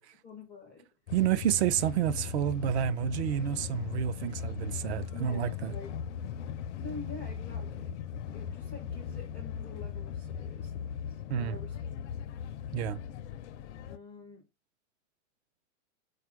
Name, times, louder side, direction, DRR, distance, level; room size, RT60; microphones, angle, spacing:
voice 1, 0.2-0.9 5.1-5.9 6.8-8.0 8.3-11.8 13.9-14.4, left 3 dB, 5° left, 0.3 m, -47 dB
sound 1, 1.1-14.0, left 8 dB, 65° left, 0.5 m, -38 dB
voice 2, 1.1-5.7 11.3-11.6 12.7-13.0, right 10 dB, 55° right, 0.6 m, -29 dB
4.4 x 2.4 x 4.6 m
supercardioid pair, 150°, 38 cm